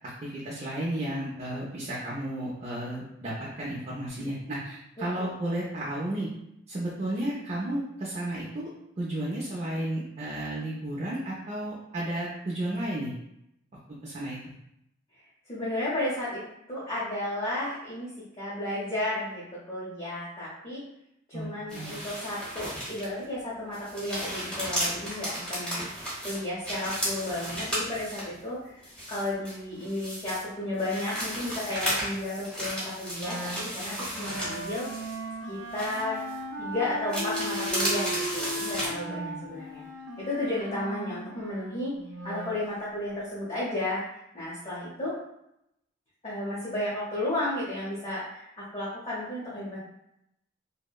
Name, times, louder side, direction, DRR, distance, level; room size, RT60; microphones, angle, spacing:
voice 1, 0.0-6.3 6.7-8.7 9.0-13.1 14.0-14.4 21.3-22.0 39.1-39.5, right 1 dB, 35° right, -6 dB, 0.4 m, -33 dB
voice 2, 15.5-16.4 16.7-18.1 18.4-20.8 21.3-28.8 29.1-34.9 35.5-36.2 36.6-39.9 40.2-41.9 42.2-44.0 44.3-45.1 46.2-49.8, left 1 dB, 30° left, -9 dB, 0.6 m, -33 dB
sound 1, 21.7-23.2 23.6-28.4 28.8-30.4 30.8-35.4 35.7-36.4 37.1-38.9, equal, 5° left, 0.8 m, -34 dB
Wind instrument woodwind instrument, 33.2-42.6, right 1 dB, 85° right, 0.6 m, -37 dB
2.7 x 2.0 x 2.2 m, 0.80 s
head